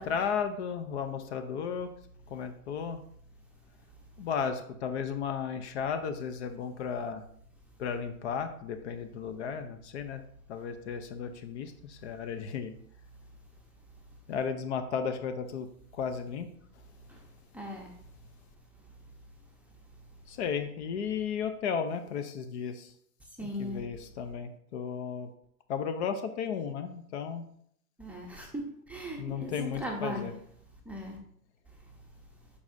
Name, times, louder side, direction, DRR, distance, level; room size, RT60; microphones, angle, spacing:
voice 1, 0.0-1.9 2.3-3.0 4.2-7.2 7.8-10.2 10.5-12.8 14.3-15.7 15.9-16.5 20.3-22.9 23.4-25.3 25.7-27.4 29.2-30.3, left 6 dB, 50° left, 8 dB, 0.8 m, -34 dB
voice 2, 17.0-19.1 19.4-20.4 23.4-23.8 28.0-30.3 30.8-31.2 31.7-32.5, equal, 5° right, -1 dB, 0.8 m, -41 dB
7.2 x 4.9 x 2.7 m, 0.67 s
hypercardioid pair, 120°, 45 cm